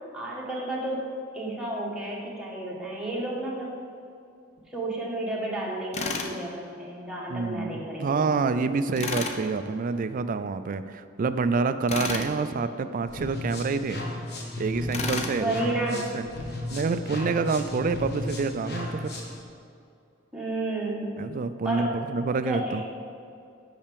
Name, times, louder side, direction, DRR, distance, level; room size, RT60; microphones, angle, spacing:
voice 1, 0.1-1.1 1.3-3.7 4.7-8.3 15.4-16.1 20.3-21.2 21.6-22.0 22.4-22.8, right 1 dB, 5° right, -5 dB, 1.3 m, -31 dB
Tools, 5.9-6.3 9.0-9.4 11.9-12.3 14.9-15.4, left 3 dB, 35° left, 0.6 m, -30 dB
voice 2, 7.3-14.0 14.6-15.6 15.9-16.3 16.7-19.1 21.2-22.8, right 4 dB, 40° right, 11 dB, 0.3 m, -27 dB
sound 1, 13.1-19.4, left 1 dB, 55° left, 1.1 m, -35 dB
5.8 x 5.6 x 6.8 m, 2.5 s
head